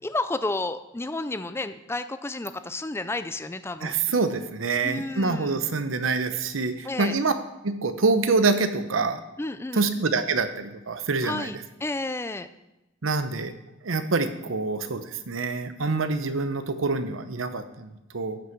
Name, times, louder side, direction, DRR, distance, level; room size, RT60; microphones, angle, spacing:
voice 1, 0.0-3.9 4.8-5.5 6.8-7.1 9.4-9.9 11.2-11.6 11.8-12.5, left 2 dB, 15° left, 11 dB, 0.4 m, -31 dB
voice 2, 3.8-7.3 7.6-9.2 9.7-11.5 13.0-13.5 13.8-18.4, right 3 dB, 80° right, 10 dB, 0.8 m, -26 dB
13.0 x 6.3 x 4.6 m, 0.96 s
head